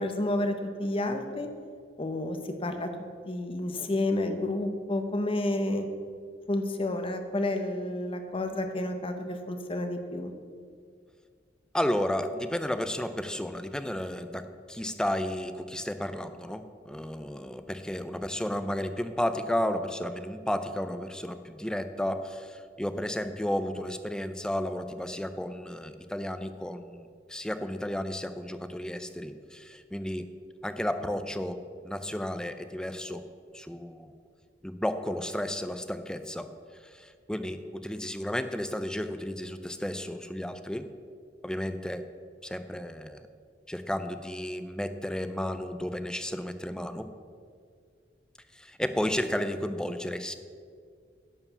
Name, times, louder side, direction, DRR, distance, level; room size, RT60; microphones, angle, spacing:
voice 1, 0.0-1.5 2.0-2.9 3.3-5.9 6.5-10.3, left 1 dB, 30° left, 6 dB, 0.8 m, -30 dB
voice 2, 11.7-30.3 30.6-33.3 33.5-34.1 34.6-36.5 36.8-40.9 41.4-42.0 42.4-43.3 43.7-47.1 48.5-50.3, left 1 dB, 5° left, 10 dB, 0.4 m, -33 dB
11.0 x 4.8 x 6.8 m, 2.1 s
head